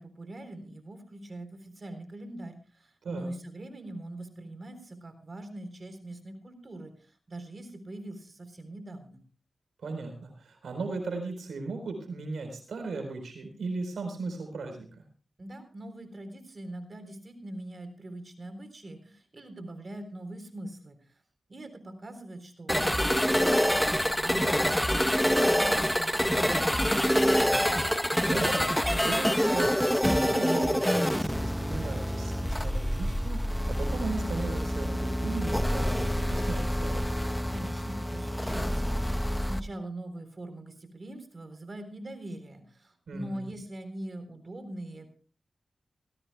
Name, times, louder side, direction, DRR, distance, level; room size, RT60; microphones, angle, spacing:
voice 1, 0.0-9.2 15.4-21.2 21.5-26.8 37.5-45.1, right 1 dB, 50° right, 9 dB, 3.7 m, -42 dB
voice 2, 9.8-15.0 27.4-37.1 43.1-43.5, right 3 dB, 85° right, 5 dB, 4.1 m, -37 dB
sound 1, 22.7-39.6, equal, 5° left, 0.9 m, -26 dB
19.0 x 17.0 x 2.3 m, 0.39 s
cardioid pair, 50°, 0 cm